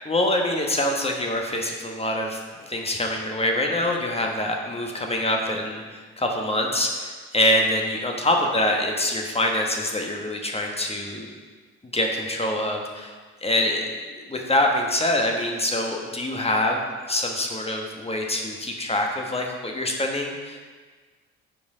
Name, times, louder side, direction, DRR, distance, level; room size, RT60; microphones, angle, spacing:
voice 1, 0.0-11.3 11.9-13.1 13.4-16.8 17.1-20.6, left 1 dB, 15° left, 1 dB, 1.4 m, -25 dB
9.6 x 5.6 x 3.9 m, 1.5 s
figure-of-eight pair, 45°, 36 cm